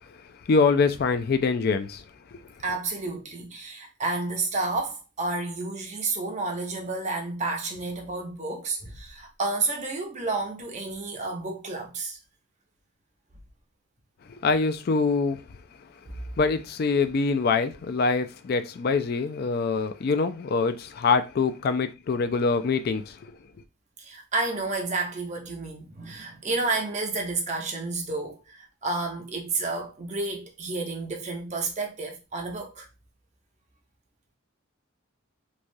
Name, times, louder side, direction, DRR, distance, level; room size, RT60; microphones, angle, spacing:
voice 1, 0.5-2.0 2.3-2.4 14.3-15.4 16.4-23.2, left 4 dB, 45° left, 0.3 m, -24 dB
voice 2, 2.6-12.2 16.1-16.2 24.0-32.9, right 3 dB, 35° right, 0.6 m, -30 dB
3.2 x 2.3 x 2.6 m
head